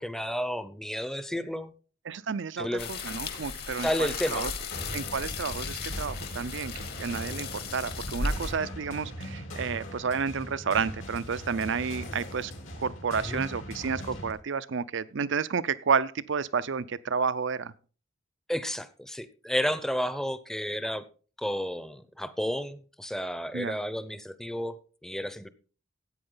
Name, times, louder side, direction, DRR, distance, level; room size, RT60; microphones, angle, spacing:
voice 1, 0.0-1.7 2.6-2.9 3.8-4.5 13.2-13.4 18.5-21.0 21.4-25.5, equal, ahead, 0.7 m, -32 dB
voice 2, 2.1-4.5 4.9-6.7 7.0-12.5 12.8-17.7 23.5-23.8, right 5 dB, 65° right, 0.6 m, -31 dB
sound 1, 2.8-8.5, left 4 dB, 55° left, 1.7 m, -35 dB
sound 2, 4.7-14.3, equal, 75° left, 3.4 m, -40 dB
14.0 x 8.8 x 3.9 m
head